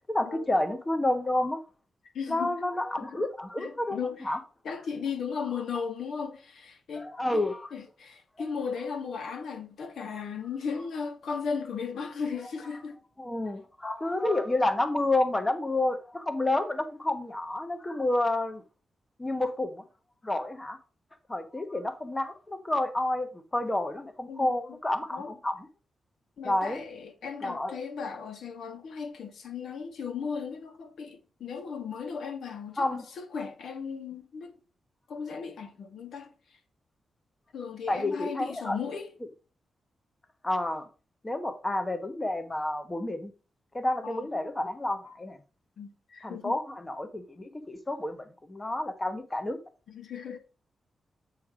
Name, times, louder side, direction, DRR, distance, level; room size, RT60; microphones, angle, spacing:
voice 1, 0.1-1.6 2.3-4.4 7.0-7.7 8.4-8.5 10.1-10.2 13.2-18.6 19.2-19.8 20.2-20.8 21.3-25.6 26.4-26.8 27.4-27.8 32.8-33.1 37.9-38.8 40.4-40.9 41.2-43.3 43.7-45.4 46.2-49.6, left 1 dB, 15° left, 0.9 m, -30 dB
voice 2, 2.1-2.5 3.0-3.2 3.6-4.3 4.6-7.4 7.7-13.0 24.3-24.8 25.1-25.3 26.4-34.5 35.1-36.3 37.5-39.1 44.0-44.3 45.8-46.6 49.9-50.4, left 6 dB, 70° left, 1.5 m, -36 dB
8.4 x 3.2 x 6.1 m
wide cardioid pair, 180°, 0 cm